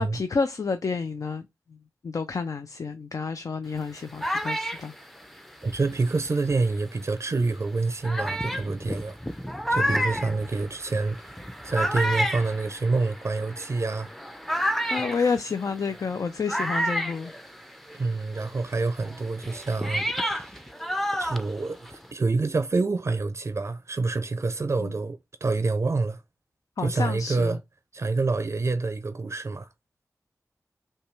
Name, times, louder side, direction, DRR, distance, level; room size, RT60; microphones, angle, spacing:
voice 1, 0.0-1.8 2.0-4.9 14.9-17.3 24.8-24.9 26.8-27.6, left 5 dB, 70° left, 0.4 m, -29 dB
sound 1, 3.7-6.8 7.4-7.5 8.0-18.1 18.3-22.1, equal, 5° left, 0.5 m, -31 dB
voice 2, 5.6-9.2 9.7-11.3 11.6-14.1 14.9-15.2 17.9-20.6 21.2-26.2 26.8-27.6 27.9-29.7, right 3 dB, 50° right, 0.4 m, -27 dB
5.5 x 2.3 x 3.1 m
wide cardioid pair, 65°, 6 cm